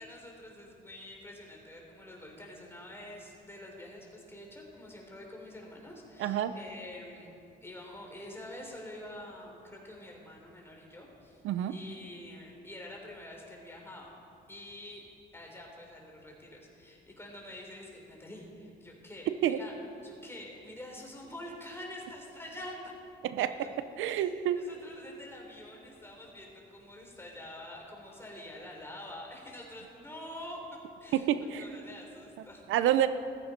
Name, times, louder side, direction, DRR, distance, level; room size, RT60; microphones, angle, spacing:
voice 1, 0.0-7.3 7.6-11.4 11.7-14.1 14.5-15.0 15.3-19.7 20.0-22.9 23.6-23.7 24.1-30.6 31.0-31.3 31.6-32.7, left 1 dB, 10° left, -1 dB, 4.3 m, -47 dB
voice 2, 6.2-6.5 11.4-11.7 19.3-19.6 23.2-23.5 24.0-24.6 31.1-31.6 32.7-33.1, right 11 dB, 85° right, 12 dB, 0.7 m, -28 dB
15.0 x 14.5 x 5.3 m, 2.5 s
cardioid pair, 90°, 20 cm